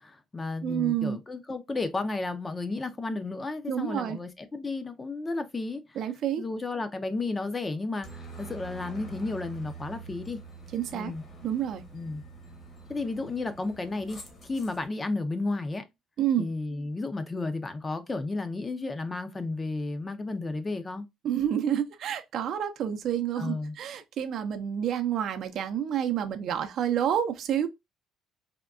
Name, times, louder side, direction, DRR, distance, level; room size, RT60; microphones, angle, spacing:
voice 1, 0.0-6.0 6.4-10.4 10.9-11.2 11.9-12.2 12.9-15.8 16.4-21.1 23.4-23.7, left 3 dB, 20° left, 0.5 m, -33 dB
voice 2, 0.6-1.2 3.7-4.2 6.0-6.4 10.7-11.1 11.4-11.8 16.2-16.5 21.2-27.7, right 9 dB, 60° right, 0.5 m, -29 dB
Aircraft, 8.0-14.9, right 3 dB, 40° left, 1.0 m, -46 dB
3.5 x 2.2 x 2.4 m
cardioid pair, 115°, 0 cm